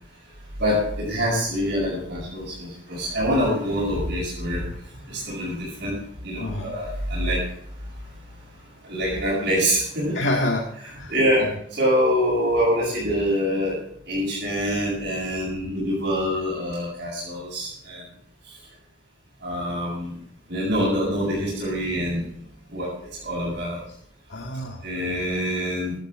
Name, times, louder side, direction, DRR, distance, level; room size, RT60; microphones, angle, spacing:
voice 1, 0.6-4.6 4.9-5.9 6.2-7.4 8.8-10.2 11.1-18.1 19.4-20.2 20.5-22.2 22.7-22.9 23.2-23.8 24.8-26.0, equal, 60° right, -9 dB, 7.6 m, -25 dB
voice 2, 6.4-6.8 10.1-11.1 11.4-11.5 24.3-24.8, left 1 dB, 70° left, -1 dB, 2.0 m, -27 dB
17.0 x 13.0 x 3.8 m, 0.66 s
head